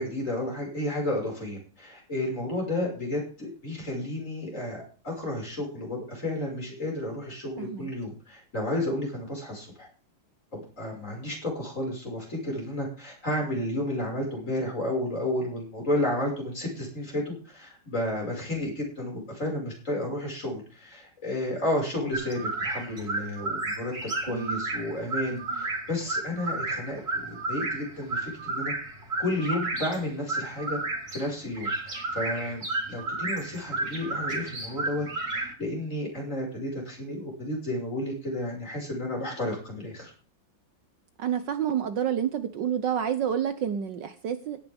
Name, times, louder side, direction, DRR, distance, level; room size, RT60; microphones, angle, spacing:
voice 1, 0.0-9.9 10.5-23.9 24.2-28.7 29.2-30.8 31.1-40.1, left 1 dB, 35° left, 0 dB, 6.0 m, -32 dB
voice 2, 7.6-7.9 24.3-24.6 25.5-25.6 41.2-44.6, right 9 dB, 65° right, 10 dB, 1.4 m, -29 dB
sound 1, 22.1-35.5, right 2 dB, 45° right, 3.4 m, -32 dB
17.0 x 10.0 x 3.6 m, 0.39 s
omnidirectional pair, 2.3 m